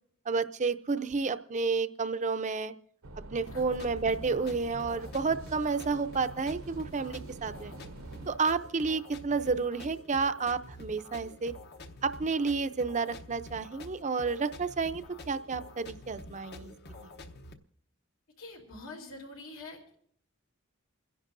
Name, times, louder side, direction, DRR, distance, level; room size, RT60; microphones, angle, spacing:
voice 1, 0.3-2.7 3.2-7.7 8.3-11.5 12.0-16.7 17.0-17.1, right 4 dB, 35° right, 10 dB, 0.5 m, -31 dB
sound 1, 3.0-8.4, right 1 dB, 75° right, 0.9 m, -46 dB
sound 2, 3.5-17.5, left 1 dB, 50° left, 0.9 m, -48 dB
voice 2, 18.4-20.0, left 2 dB, 85° left, 0 dB, 2.9 m, -45 dB
28.5 x 11.0 x 2.6 m, 0.63 s
head